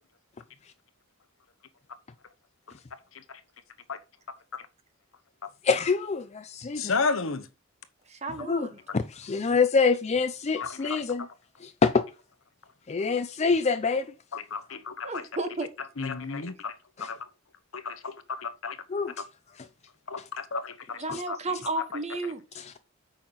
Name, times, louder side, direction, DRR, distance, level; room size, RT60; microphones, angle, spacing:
voice 1, 5.6-6.9 8.5-8.7 8.9-11.3 11.6-12.0 12.9-14.1 17.0-17.1 18.9-19.1 21.1-21.2 22.6-22.8, left 4 dB, 30° left, 0.4 m, -26 dB
voice 2, 6.7-7.5 10.6-11.0 14.3-15.2 16.0-17.2 17.7-18.8 20.1-21.4, left 4 dB, 70° left, 1.0 m, -33 dB
voice 3, 8.1-8.8 15.0-15.7 21.0-22.6, right 2 dB, 35° right, 1.3 m, -33 dB
8.7 x 5.7 x 3.9 m
head